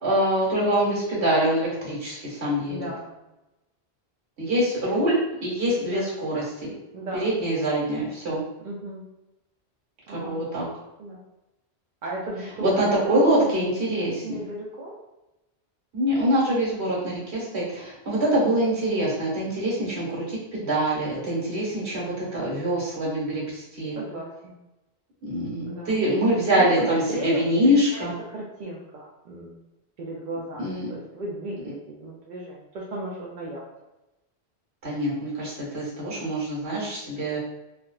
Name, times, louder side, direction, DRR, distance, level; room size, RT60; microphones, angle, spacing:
voice 1, 0.0-2.8 4.4-6.7 7.1-8.4 10.1-10.7 12.6-14.4 15.9-24.0 25.2-28.1 30.6-30.9 34.8-37.4, right 1 dB, 85° right, -5 dB, 1.5 m, -24 dB
voice 2, 2.7-3.1 5.8-6.1 6.9-7.2 8.6-9.0 10.1-10.4 11.0-11.2 12.0-13.5 13.9-14.9 18.8-19.0 23.9-24.5 25.6-25.9 26.6-28.1 28.3-29.6 30.0-33.6, right 1 dB, 60° right, -4 dB, 0.6 m, -34 dB
3.5 x 2.1 x 2.3 m, 0.96 s
omnidirectional pair, 1.1 m